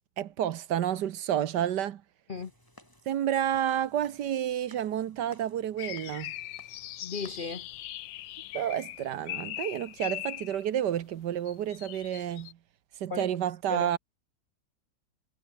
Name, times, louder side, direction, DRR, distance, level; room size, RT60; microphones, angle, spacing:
voice 1, 0.2-2.0 3.1-6.3 8.5-12.6 13.0-14.0, right 10 dB, 70° right, 1.5 m, -30 dB
sound 1, 2.3-7.8, equal, 10° left, 7.2 m, -59 dB
sound 2, 5.8-10.7 11.5-12.5, left 13 dB, 85° left, 1.5 m, -40 dB
voice 2, 7.0-7.7 13.1-13.3 13.7-13.9, left 4 dB, 40° left, 0.7 m, -35 dB
omnidirectional pair, 1.9 m